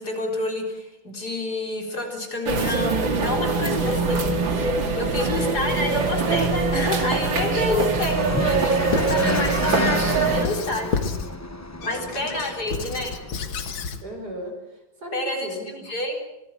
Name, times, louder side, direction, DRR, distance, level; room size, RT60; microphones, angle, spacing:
voice 1, 0.0-4.3 4.9-11.0 11.8-13.1 15.1-16.2, left 2 dB, 50° left, 1 dB, 4.7 m, -28 dB
sound 1, 2.5-10.4, right 4 dB, 70° right, 3.0 m, -23 dB
sound 2, 3.3-13.9, left 1 dB, 15° left, 0.5 m, -33 dB
voice 2, 5.2-5.6 11.8-13.0 14.0-15.9, right 1 dB, 50° right, 3 dB, 5.7 m, -38 dB
Squeak / Writing, 8.9-9.8 10.4-11.3 11.8-14.0, left 5 dB, 85° left, 2.3 m, -31 dB
26.0 x 18.5 x 7.5 m, 0.97 s
omnidirectional pair, 2.1 m